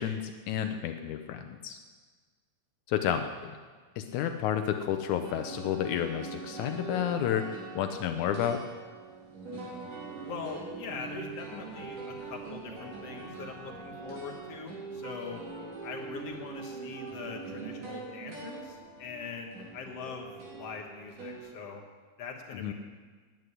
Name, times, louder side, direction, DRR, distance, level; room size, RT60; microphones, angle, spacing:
voice 1, 0.0-1.8 2.9-3.6 4.0-8.6 22.6-22.7, left 9 dB, 80° left, 7 dB, 2.0 m, -31 dB
sound 1, 5.2-21.4, right 4 dB, 55° right, 4.9 m, -42 dB
voice 2, 10.3-15.4 15.8-21.8 22.2-22.7, left 5 dB, 60° left, 1 dB, 2.2 m, -42 dB
9.4 x 9.1 x 9.7 m, 1.5 s
omnidirectional pair, 3.5 m